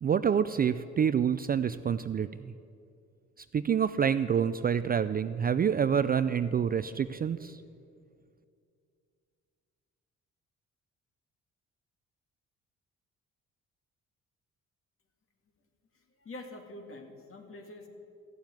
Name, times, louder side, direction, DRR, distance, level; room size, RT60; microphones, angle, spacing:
voice 1, 0.0-2.5 3.5-7.6, right 7 dB, 30° right, 13 dB, 0.4 m, -27 dB
voice 2, 16.2-17.9, left 2 dB, 45° left, 4 dB, 2.1 m, -45 dB
14.0 x 7.3 x 9.2 m, 2.4 s
cardioid pair, 90°, 30 cm